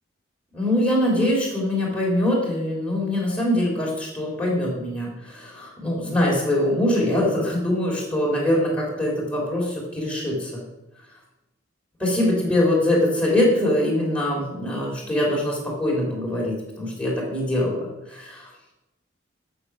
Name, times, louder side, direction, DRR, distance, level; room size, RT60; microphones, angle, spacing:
voice 1, 0.5-10.6 12.0-18.5, left 1 dB, 5° left, -4 dB, 3.4 m, -23 dB
13.0 x 7.2 x 6.0 m, 1.0 s
head